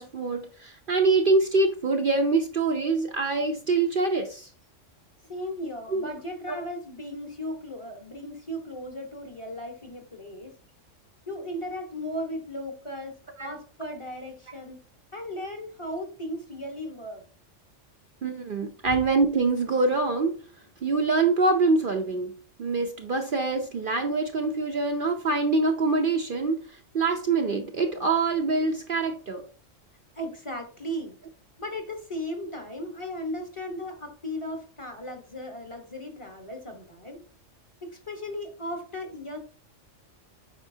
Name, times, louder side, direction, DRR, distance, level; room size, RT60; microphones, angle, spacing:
voice 1, 0.0-4.5 5.9-6.1 6.5-6.6 13.4-13.5 18.2-20.4 20.8-22.3 22.6-26.6 26.9-29.4, right 3 dB, 50° right, 0.8 m, -25 dB
voice 2, 5.3-10.6 11.3-14.8 15.1-17.2 18.9-19.0 30.1-31.2 31.6-37.2 37.8-39.4, equal, 25° left, 1.2 m, -36 dB
8.2 x 5.2 x 2.7 m
omnidirectional pair, 1.3 m